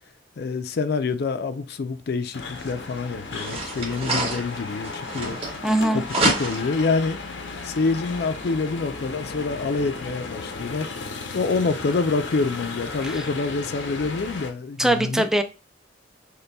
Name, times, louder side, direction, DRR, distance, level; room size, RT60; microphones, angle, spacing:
voice 1, 0.4-5.4 5.9-7.2 7.6-10.9 11.3-15.3, left 4 dB, 60° left, 0.4 m, -26 dB
sound 1, 2.3-14.5, left 3 dB, 90° left, 0.8 m, -35 dB
sound 2, 2.6-2.7 3.3-5.8 6.1-6.8, right 2 dB, 30° right, 1.1 m, -27 dB
voice 2, 5.6-6.0 13.0-13.2 14.8-15.4, right 1 dB, 5° right, 0.4 m, -22 dB
6.5 x 2.2 x 2.2 m
head